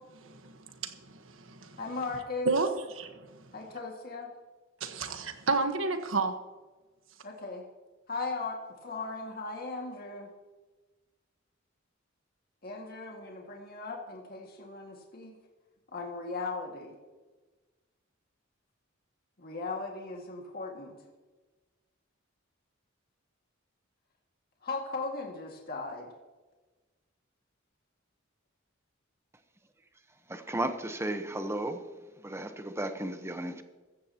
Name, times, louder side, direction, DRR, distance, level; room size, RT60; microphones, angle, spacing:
voice 1, 0.2-0.5 0.8-1.1 1.5-1.8 2.4-2.7 3.0-3.3 4.8-6.3, right 4 dB, 75° right, 1.4 m, -30 dB
voice 2, 1.8-2.5 3.5-4.3 7.2-7.7 8.1-10.3 12.6-15.4 15.9-17.0 19.4-21.0 24.6-26.1, left 3 dB, 50° left, 2.1 m, -38 dB
voice 3, 30.3-31.8 32.2-33.6, right 1 dB, 15° right, 1.0 m, -34 dB
15.0 x 15.0 x 3.0 m
head